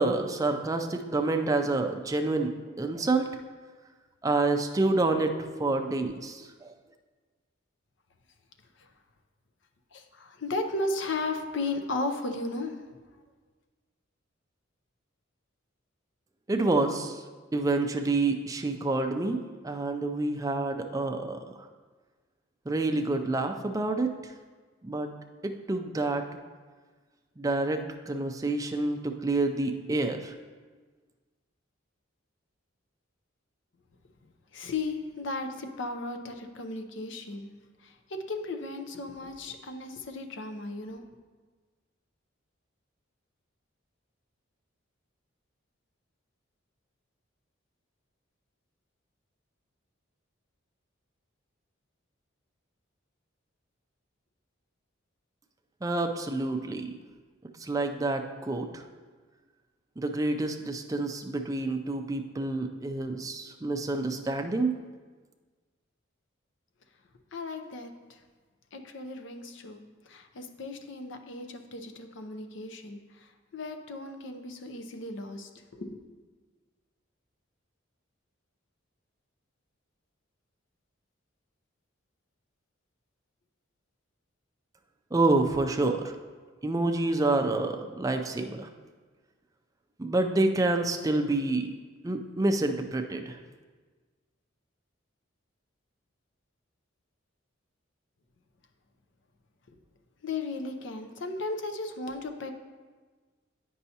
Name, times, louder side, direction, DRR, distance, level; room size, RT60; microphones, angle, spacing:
voice 1, 0.0-3.3 4.2-5.3 5.6-6.7 16.5-17.2 17.5-21.7 22.7-24.1 24.8-25.1 25.4-26.2 27.4-30.4 55.8-56.9 57.6-58.8 60.0-64.8 85.1-86.1 86.6-88.7 90.0-91.7 92.0-93.4, right 2 dB, 15° right, 5 dB, 0.4 m, -28 dB
voice 2, 9.9-12.8 34.5-37.5 37.8-41.0 67.3-68.2 68.7-76.0 99.7-99.8 100.2-102.5, left 2 dB, 60° left, 6 dB, 0.6 m, -35 dB
9.1 x 5.4 x 2.8 m, 1.4 s
head